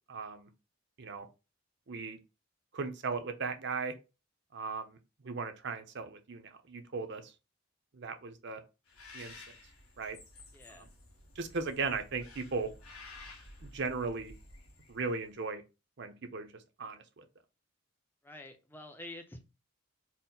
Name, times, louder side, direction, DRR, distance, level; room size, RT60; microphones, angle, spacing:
voice 1, 0.1-0.5 1.0-1.3 1.9-2.2 2.7-3.9 4.5-5.0 5.2-7.3 7.9-8.6 9.1-9.3 10.0-10.2 10.8-10.9 11.4-12.7 13.6-14.3 14.9-15.6 16.0-16.5 16.8-17.2, right 4 dB, 55° right, 0.6 m, -37 dB
Bird, 8.9-15.3, left 2 dB, 80° left, 1.2 m, -53 dB
voice 2, 10.5-10.9 18.2-19.4, left 1 dB, 10° left, 0.5 m, -48 dB
4.2 x 2.0 x 3.8 m
head